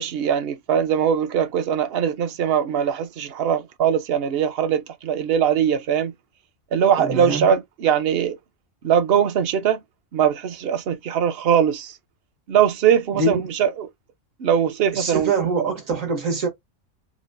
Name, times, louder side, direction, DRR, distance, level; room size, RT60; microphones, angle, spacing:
voice 1, 0.0-6.1 6.7-8.4 8.8-9.8 10.1-11.9 12.5-13.9 14.4-15.3, right 8 dB, 55° right, 0.8 m, -21 dB
voice 2, 7.0-7.5 13.1-13.4 14.9-16.5, right 3 dB, 70° right, 1.8 m, -24 dB
6.1 x 2.1 x 2.6 m
omnidirectional pair, 1.4 m